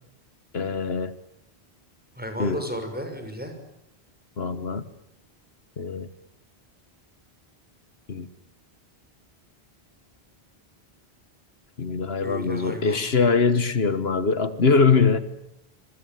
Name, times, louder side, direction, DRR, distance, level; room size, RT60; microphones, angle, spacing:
voice 1, 0.5-1.1 2.4-2.6 4.4-4.9 5.8-6.1 8.1-8.3 11.8-15.2, left 4 dB, 75° left, 1.6 m, -22 dB
voice 2, 2.2-3.5 12.2-13.0, equal, 10° right, 6.2 m, -33 dB
27.0 x 23.0 x 9.4 m
omnidirectional pair, 1.1 m